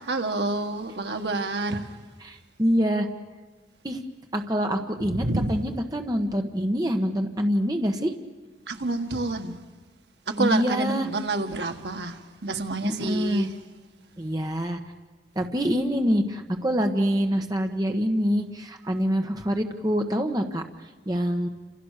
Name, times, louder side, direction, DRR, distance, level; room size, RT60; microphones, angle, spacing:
voice 1, 0.1-1.8 5.1-5.5 8.7-9.6 10.3-13.5, right 2 dB, 75° right, 1.7 m, -28 dB
voice 2, 2.2-3.1 3.8-4.0 4.3-8.1 10.4-11.1 12.8-13.5 14.2-14.8 15.3-20.6 21.1-21.5, equal, 20° right, 1.5 m, -25 dB
29.5 x 27.5 x 6.7 m
head